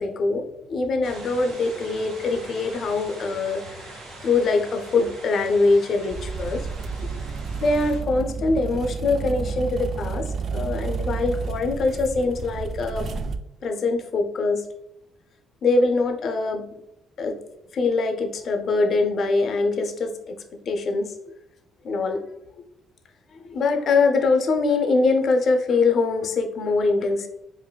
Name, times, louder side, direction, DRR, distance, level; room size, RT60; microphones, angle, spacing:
voice 1, 0.0-6.6 7.6-13.1 13.6-14.7 15.6-16.7 17.2-17.4 17.7-20.4 20.7-21.1 21.8-22.2 23.3-27.3, left 3 dB, 60° left, 5 dB, 0.5 m, -23 dB
sound 1, 1.0-8.0, right 2 dB, 80° right, 1.0 m, -42 dB
sound 2, 6.1-13.4, right 5 dB, 55° right, 0.3 m, -31 dB
4.9 x 2.5 x 2.2 m, 0.82 s
supercardioid pair, 75°, 0 cm